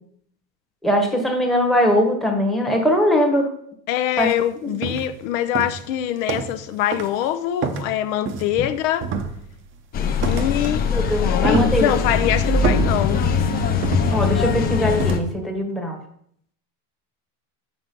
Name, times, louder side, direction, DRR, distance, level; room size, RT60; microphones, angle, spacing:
voice 1, 0.8-3.5 4.2-4.3 4.6-4.7 10.9-11.9 14.1-16.0, equal, ahead, 1.1 m, -21 dB
voice 2, 3.9-9.1 10.3-10.9 11.2-13.3, left 11 dB, 70° left, 0.7 m, -23 dB
sound 1, 4.2-4.4 4.8-5.2 5.5-6.7 6.9-7.2 7.6-8.7 9.0-9.7 10.2-10.8 11.1-12.2 12.6-13.4 13.8-14.5 15.0-15.3, right 6 dB, 30° right, 0.6 m, -28 dB
sound 2, 9.9-15.2, left 5 dB, 25° left, 0.6 m, -21 dB
7.3 x 6.2 x 5.2 m
cardioid pair, 160°, 42 cm